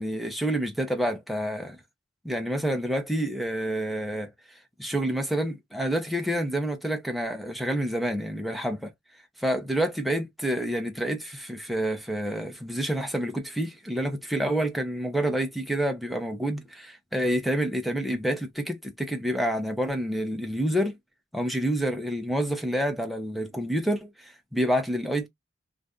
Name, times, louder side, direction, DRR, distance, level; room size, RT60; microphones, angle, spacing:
voice 1, 0.0-1.8 2.2-4.3 4.8-8.9 9.4-21.0 21.3-25.3, right 1 dB, ahead, 0.5 m, -28 dB
2.5 x 2.5 x 3.4 m
head